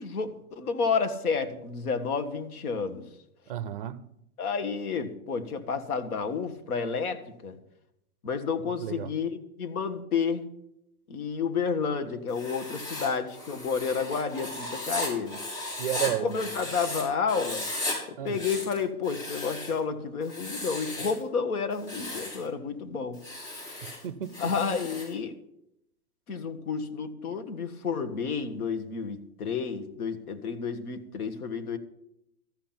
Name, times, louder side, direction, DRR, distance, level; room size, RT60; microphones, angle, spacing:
voice 1, 0.0-3.0 4.4-7.6 8.2-10.4 11.1-15.4 16.2-17.6 18.2-23.2 24.4-25.4 26.3-31.8, left 5 dB, 75° left, 1.7 m, -30 dB
voice 2, 3.5-4.1 8.6-9.1 15.8-16.4 18.2-18.4 23.8-24.5, right 12 dB, 40° right, 0.5 m, -33 dB
Writing, 12.3-17.0 17.3-18.0 18.3-19.8 20.2-21.2 21.7-22.4 23.1-25.1, left 2 dB, 40° left, 6.2 m, -36 dB
13.5 x 5.9 x 8.8 m
hypercardioid pair, 175°, 44 cm